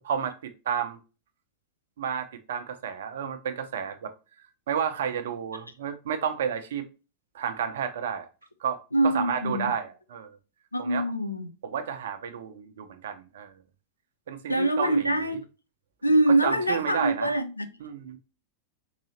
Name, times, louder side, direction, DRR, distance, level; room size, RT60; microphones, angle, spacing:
voice 1, 0.0-1.0 2.0-4.1 4.7-6.8 7.3-8.3 8.6-10.4 10.8-11.1 11.6-13.5 14.3-15.4 16.1-17.3 17.8-18.2, right 8 dB, 60° right, 0.5 m, -31 dB
voice 2, 8.9-9.7 10.7-11.5 14.5-15.4 16.0-17.7, right 1 dB, 85° left, 0.4 m, -24 dB
4.0 x 2.7 x 2.7 m
figure-of-eight pair, 90°, 0 cm